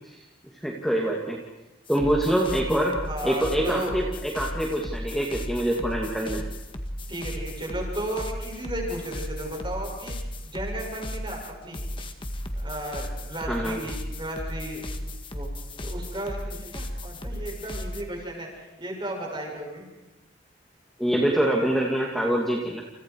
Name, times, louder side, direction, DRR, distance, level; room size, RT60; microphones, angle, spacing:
voice 1, 0.6-1.4 1.9-3.0 3.2-6.4 13.5-13.8 21.0-22.8, right 1 dB, ahead, -2 dB, 2.4 m, -25 dB
sound 1, 1.9-18.0, equal, 25° left, 1.8 m, -35 dB
voice 2, 3.0-4.0 7.1-10.1 10.4-11.9 12.6-14.8 15.3-15.5 15.8-18.5 18.8-19.8, right 1 dB, 25° right, 0 dB, 7.0 m, -34 dB
30.0 x 29.5 x 4.8 m, 1.0 s
head